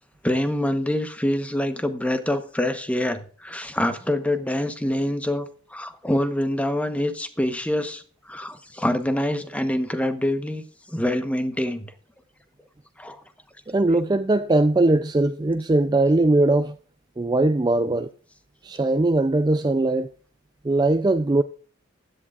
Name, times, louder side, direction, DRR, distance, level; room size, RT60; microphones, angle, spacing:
voice 1, 0.2-8.0 8.3-10.6 10.9-11.9 13.0-13.2 17.8-17.9, left 1 dB, 5° left, 1.0 m, -25 dB
voice 2, 13.7-16.8 17.2-18.1 18.6-20.1 20.6-21.4, right 2 dB, 20° right, 0.4 m, -20 dB
16.0 x 11.0 x 2.4 m
head